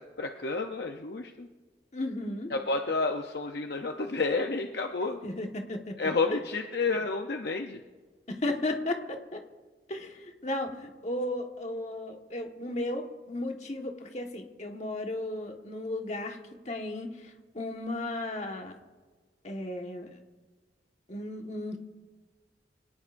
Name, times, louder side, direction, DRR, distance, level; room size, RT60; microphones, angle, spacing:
voice 1, 0.0-1.5 2.5-5.2 6.0-7.8, left 3 dB, 60° left, 4 dB, 0.7 m, -30 dB
voice 2, 1.9-2.5 5.2-6.4 8.3-9.4 9.9-16.4 16.6-18.8 19.4-20.2 21.1-21.8, left 1 dB, 40° left, 3 dB, 1.5 m, -35 dB
25.0 x 18.0 x 2.6 m, 1.3 s
head